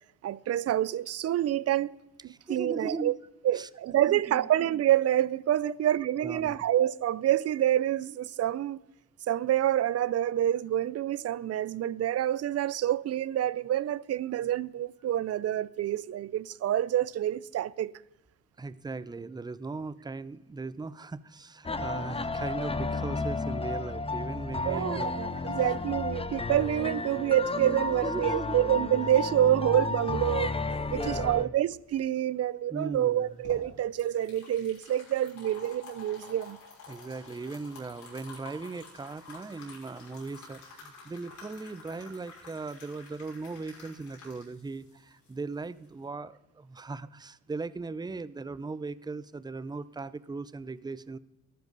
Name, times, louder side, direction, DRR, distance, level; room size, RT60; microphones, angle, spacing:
voice 1, 0.2-1.9 2.2-3.1 3.4-8.8 9.3-17.9 24.7-30.5 30.9-36.6, right 12 dB, 55° right, 0.6 m, -27 dB
voice 2, 2.3-3.2 3.5-3.7 4.1-4.5 5.6-5.7 6.2-6.6 18.6-25.1 25.3-25.5 28.0-28.6 31.0-31.5 32.7-33.3 36.9-51.2, right 3 dB, 15° right, 0.6 m, -38 dB
sound 1, 21.6-31.4, left 3 dB, 20° left, 0.9 m, -32 dB
sound 2, 33.1-46.0, left 3 dB, 70° left, 6.0 m, -50 dB
13.5 x 12.0 x 4.0 m
cardioid pair, 90°, 30 cm